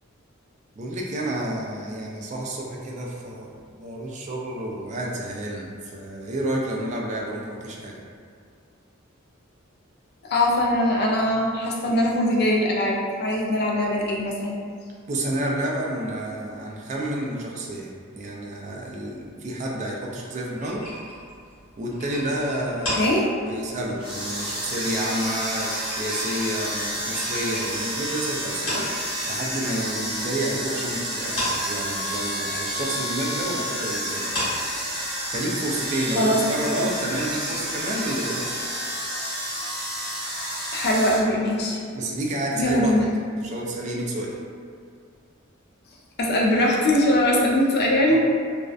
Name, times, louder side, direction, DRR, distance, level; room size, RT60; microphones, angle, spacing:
voice 1, 0.8-8.0 15.1-20.8 21.8-23.1 23.5-34.3 35.3-38.6 41.9-42.9 43.4-44.4 48.1-48.2, right 1 dB, 35° right, -2 dB, 0.3 m, -30 dB
voice 2, 10.2-14.6 23.0-23.3 36.2-36.4 36.8-36.9 40.7-41.8 42.6-43.1 46.2-48.2, left 1 dB, 50° left, -2 dB, 0.4 m, -21 dB
sound 1, 20.6-29.6 29.9-30.9 31.2-38.5, equal, 80° left, 1.1 m, -35 dB
sound 2, 24.0-41.2, equal, 5° right, 0.6 m, -30 dB
2.5 x 2.1 x 2.3 m, 2.2 s
head